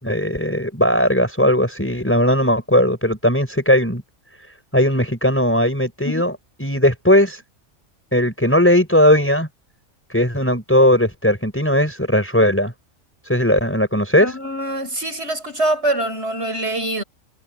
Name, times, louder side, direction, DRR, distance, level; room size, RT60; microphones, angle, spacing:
voice 1, 0.0-4.0 4.7-7.4 8.1-9.5 10.1-12.7 13.2-14.3, left 1 dB, 10° left, 5.7 m, -18 dB
voice 2, 14.2-17.0, right 1 dB, 50° right, 6.6 m, -24 dB
omnidirectional pair, 1.4 m